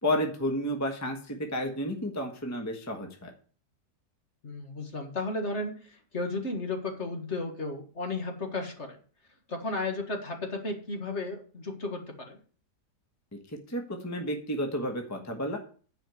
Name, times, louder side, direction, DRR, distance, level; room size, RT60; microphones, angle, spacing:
voice 1, 0.0-3.3 13.3-15.6, equal, 10° left, 3 dB, 1.2 m, -31 dB
voice 2, 4.4-9.0 9.5-12.4, left 2 dB, 45° left, 4 dB, 1.9 m, -34 dB
10.0 x 5.2 x 7.7 m, 0.41 s
omnidirectional pair, 1.8 m